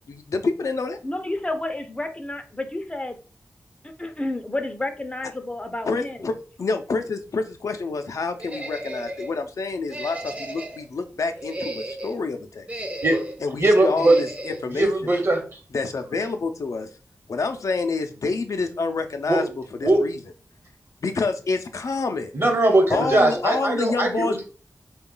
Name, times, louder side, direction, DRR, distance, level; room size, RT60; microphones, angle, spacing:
voice 1, 0.1-1.0 5.9-12.7 13.4-14.9 15.7-16.9 17.3-19.5 19.8-20.2 21.0-22.3 22.9-24.4, left 4 dB, 75° left, 7 dB, 0.4 m, -27 dB
voice 2, 1.0-3.2 4.0-6.3 22.9-23.4, left 1 dB, 20° left, 6 dB, 0.5 m, -30 dB
sound 1, 8.4-9.3 9.9-10.9 11.3-12.2 12.7-13.4 14.0-14.6, right 1 dB, 25° right, 0.6 m, -34 dB
voice 3, 13.6-14.2 14.7-15.6 19.3-19.4 19.8-20.0 22.3-24.3, right 2 dB, 45° right, 3 dB, 1.0 m, -20 dB
3.7 x 2.3 x 3.7 m, 0.38 s
wide cardioid pair, 90°, 6 cm